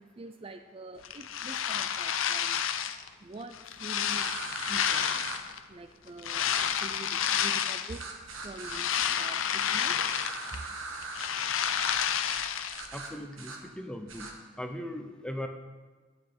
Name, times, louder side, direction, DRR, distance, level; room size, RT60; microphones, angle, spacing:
voice 1, 0.0-2.9 3.2-5.3 5.7-10.8, right 2 dB, 25° right, 7 dB, 0.4 m, -46 dB
sound 1, 1.0-3.1 3.5-5.6 6.2-8.0 8.4-10.7 10.9-12.9, left 8 dB, 80° left, 0.6 m, -30 dB
sound 2, 4.1-5.4 6.5-6.7 7.9-8.8 10.0-11.3 11.6-12.0 12.2-12.4 12.7-13.6 14.1-14.3, right 3 dB, 85° right, 1.6 m, -40 dB
voice 2, 12.9-14.3 14.6-15.5, left 1 dB, 5° left, 5 dB, 0.7 m, -38 dB
9.6 x 6.1 x 8.5 m, 1.4 s
head